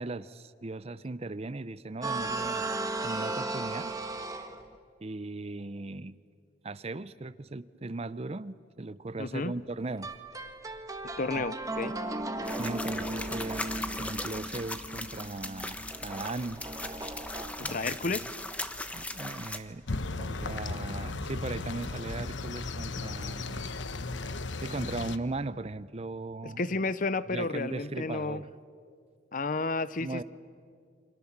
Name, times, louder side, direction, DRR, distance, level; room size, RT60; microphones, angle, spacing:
voice 1, 0.0-4.0 5.0-6.2 6.6-10.1 11.3-11.4 12.6-16.7 17.6-18.0 18.9-19.9 20.2-23.6 24.6-26.7 27.3-28.5 30.0-30.2, right 2 dB, 35° right, 16 dB, 0.6 m, -38 dB
sound 1, 2.0-4.8 10.0-20.1, right 2 dB, 20° right, 1.4 m, -37 dB
voice 2, 9.2-9.5 11.2-11.9 17.7-18.3 26.4-28.4 29.3-30.2, left 3 dB, 45° left, 16 dB, 0.7 m, -31 dB
sound 2, 12.4-19.6, left 1 dB, 5° left, 1.1 m, -38 dB
sound 3, 19.9-25.2, left 3 dB, 85° left, 1.0 m, -36 dB
29.0 x 25.5 x 7.4 m, 2.2 s
head